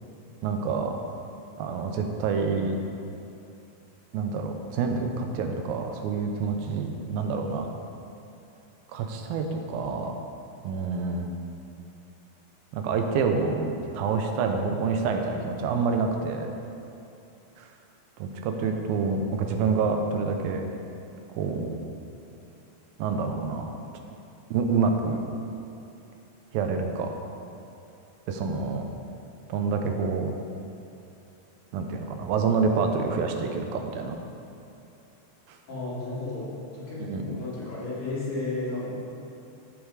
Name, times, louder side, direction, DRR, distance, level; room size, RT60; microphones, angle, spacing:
voice 1, 0.4-1.0 1.6-2.8 4.1-7.7 8.9-10.1 10.6-11.3 12.7-16.5 17.6-17.7 18.2-20.6 21.4-21.8 23.0-23.7 24.5-25.2 26.5-27.1 28.3-28.9 29.5-30.3 31.7-34.2 35.5-35.6 37.0-37.4, right 5 dB, 90° right, 4 dB, 2.6 m, -27 dB
voice 2, 35.7-39.0, left 2 dB, 75° left, -9 dB, 4.5 m, -33 dB
14.0 x 5.4 x 4.8 m, 2.8 s
omnidirectional pair, 4.1 m